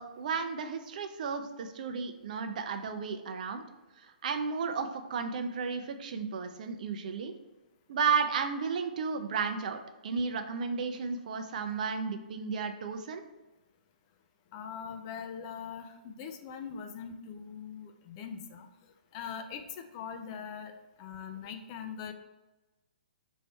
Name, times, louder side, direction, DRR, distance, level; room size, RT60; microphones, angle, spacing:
voice 1, 0.0-3.7 4.2-7.4 7.9-13.2, right 5 dB, 55° right, 7 dB, 0.5 m, -33 dB
voice 2, 14.5-18.7 19.1-20.7 21.0-22.1, left 7 dB, 35° left, 6 dB, 0.4 m, -42 dB
3.2 x 2.7 x 4.4 m, 1.1 s
hypercardioid pair, 140°, 5 cm